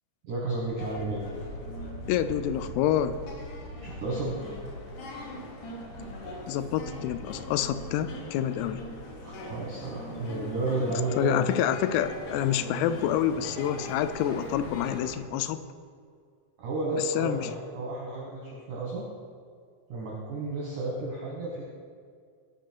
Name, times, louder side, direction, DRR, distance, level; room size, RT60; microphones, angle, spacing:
voice 1, 0.2-1.2 3.8-4.5 9.2-11.5 16.6-19.1 19.9-21.6, right 2 dB, 75° right, -4 dB, 1.8 m, -32 dB
sound 1, 0.6-15.1, left 1 dB, 70° left, 2.0 m, -40 dB
voice 2, 2.1-3.2 6.5-8.8 11.2-15.6 17.2-17.5, left 10 dB, 85° left, 12 dB, 3.2 m, -27 dB
17.5 x 6.2 x 4.6 m, 2.2 s
omnidirectional pair, 6.0 m